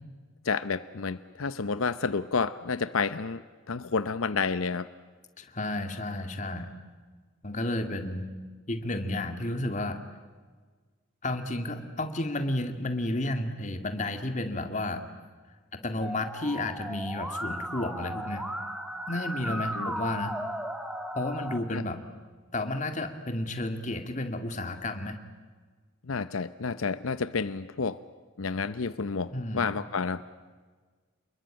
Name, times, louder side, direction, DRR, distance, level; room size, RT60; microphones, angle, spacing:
voice 1, 0.4-3.4 3.7-4.9 19.5-19.9 21.7-21.8 26.1-28.0 28.4-30.2, left 5 dB, 85° left, 14 dB, 0.7 m, -30 dB
voice 2, 5.4-6.7 7.4-8.3 8.7-10.0 11.2-15.0 15.7-18.4 19.1-20.3 21.1-22.0 22.5-25.2 29.3-29.8, left 1 dB, 35° left, 7 dB, 2.1 m, -32 dB
Musical instrument, 16.0-21.6, equal, 5° right, 2.3 m, -36 dB
28.5 x 21.5 x 9.0 m, 1.5 s
head